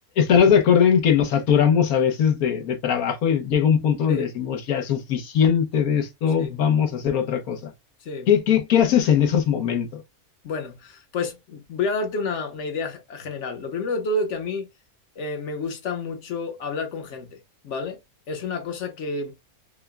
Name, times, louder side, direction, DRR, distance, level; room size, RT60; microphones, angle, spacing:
voice 1, 0.2-7.7 8.3-10.0, left 8 dB, 75° left, 1.3 m, -20 dB
voice 2, 10.4-14.7 15.2-17.4 17.6-18.0 18.3-19.3, left 3 dB, 55° left, 1.3 m, -29 dB
5.9 x 2.2 x 2.2 m
omnidirectional pair, 1.6 m